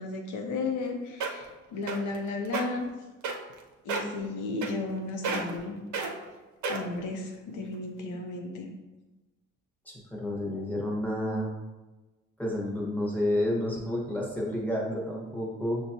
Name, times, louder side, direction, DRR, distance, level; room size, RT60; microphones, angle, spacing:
voice 1, 0.0-2.9 3.8-5.8 6.7-8.7, left 3 dB, 80° left, 3 dB, 0.8 m, -34 dB
sound 1, 0.8-0.9 1.2-1.5 1.9-2.2 2.5-2.6 3.2-3.6 3.9-4.2 4.6-5.0 5.2-5.6 5.9-6.1 6.6-7.0 7.6-7.7, right 4 dB, 70° right, 0.7 m, -31 dB
voice 2, 9.9-11.5 12.4-15.8, left 1 dB, 5° left, -3 dB, 1.1 m, -30 dB
6.2 x 2.3 x 2.7 m, 1.2 s
cardioid pair, 90°, 30 cm